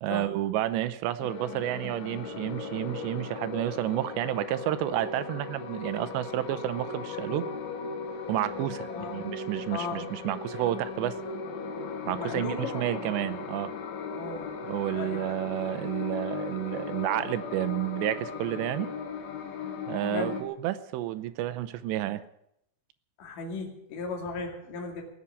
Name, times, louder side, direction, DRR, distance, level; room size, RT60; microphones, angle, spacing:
voice 1, 0.0-7.5 8.3-11.2 12.1-13.7 14.6-18.9 19.9-22.2, right 13 dB, 80° right, 13 dB, 2.9 m, -30 dB
sound 1, 1.2-20.4, left 5 dB, 90° left, 4.1 m, -37 dB
voice 2, 8.9-9.3 9.7-10.0 12.2-13.1 14.1-14.5 14.9-15.3 20.1-20.3 23.2-25.0, left 4 dB, 55° left, 0 dB, 3.7 m, -36 dB
19.0 x 7.3 x 9.7 m, 0.77 s
omnidirectional pair, 5.1 m